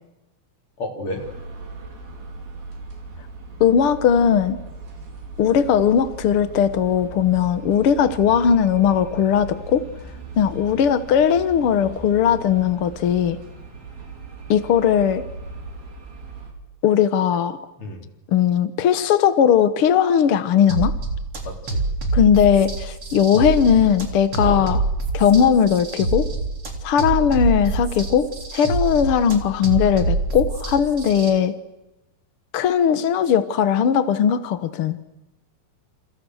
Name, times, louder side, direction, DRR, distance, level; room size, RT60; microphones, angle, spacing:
voice 1, 0.8-1.2 17.8-18.0 21.4-21.8 24.4-24.6, left 1 dB, 35° left, 2 dB, 4.9 m, -31 dB
sound 1, 1.1-16.5, right 3 dB, 70° right, 6.4 m, -39 dB
voice 2, 3.6-4.6 5.4-9.8 10.4-13.4 14.5-15.2 16.8-17.6 18.3-20.9 22.1-24.8 25.1-26.3 26.8-31.5 32.5-35.0, left 8 dB, 70° left, 11 dB, 1.3 m, -18 dB
sound 2, 5.3-16.3, equal, 20° right, 6.3 m, -46 dB
sound 3, 20.7-31.3, right 3 dB, 35° right, 4.1 m, -26 dB
30.0 x 28.0 x 6.5 m, 0.96 s
omnidirectional pair, 4.3 m